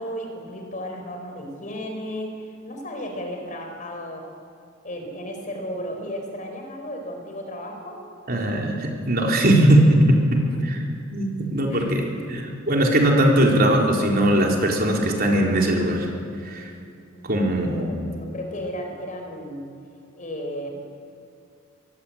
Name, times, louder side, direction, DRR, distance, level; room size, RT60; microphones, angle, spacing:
voice 1, 0.0-4.3 4.8-8.0 10.3-10.6 11.7-12.0 17.1-17.5 17.8-19.7 20.1-20.8, equal, 40° left, 3 dB, 4.9 m, -34 dB
voice 2, 8.3-10.8 11.1-16.1 16.4-16.7 17.2-18.0, right 1 dB, 50° right, 0 dB, 4.2 m, -20 dB
24.5 x 22.5 x 8.9 m, 2.4 s
head